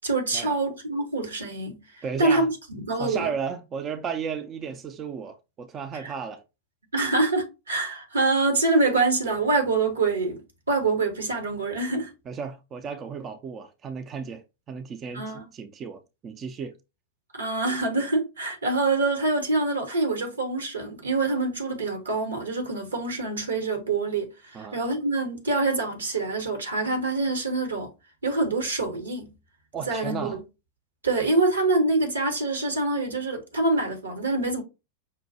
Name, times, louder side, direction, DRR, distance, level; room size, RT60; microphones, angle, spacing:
voice 1, 0.0-2.4 2.9-3.3 6.0-6.1 6.9-10.4 10.7-12.1 15.1-15.4 17.3-27.9 28.2-29.3 29.9-30.4 31.0-34.6, right 3 dB, 75° right, 0.9 m, -25 dB
voice 2, 2.0-2.5 3.0-6.4 12.3-16.7 24.5-24.8 29.7-30.4, right 6 dB, 25° right, 0.5 m, -34 dB
5.4 x 2.2 x 2.6 m
figure-of-eight pair, 90°, 0 cm